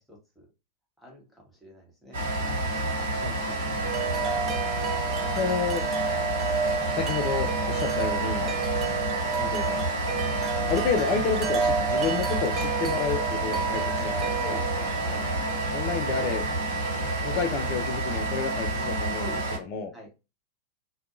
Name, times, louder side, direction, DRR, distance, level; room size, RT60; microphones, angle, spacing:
voice 1, 0.1-0.5 1.0-2.2 3.7-4.0 8.4-8.6 14.4-15.2 19.1-20.1, left 1 dB, ahead, 1.0 m, -45 dB
sound 1, 2.1-19.6, right 1 dB, 65° right, 1.1 m, -29 dB
voice 2, 3.2-3.6 5.3-5.9 6.9-8.4 9.4-9.9 10.7-14.6 15.7-16.5 17.2-19.3 19.6-19.9, left 5 dB, 40° left, 0.3 m, -30 dB
Wind chime, 3.8-17.8, right 6 dB, 25° right, 0.5 m, -32 dB
2.5 x 2.2 x 2.5 m
figure-of-eight pair, 90°, 0 cm